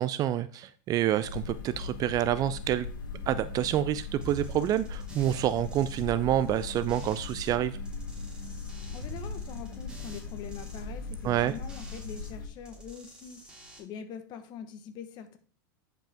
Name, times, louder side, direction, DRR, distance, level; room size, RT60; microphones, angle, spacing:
voice 1, 0.0-2.9 3.3-7.8 11.2-11.5, right 12 dB, 35° right, 14 dB, 0.4 m, -28 dB
sound 1, 1.2-12.5, left 4 dB, 85° left, 1.2 m, -39 dB
sound 2, 4.2-7.5 7.8-12.3 12.6-13.8, right 1 dB, 10° right, 2.6 m, -47 dB
voice 2, 8.9-15.4, left 7 dB, 45° left, 8 dB, 1.2 m, -44 dB
10.0 x 5.2 x 3.5 m, 0.40 s
hypercardioid pair, 115°, 10 cm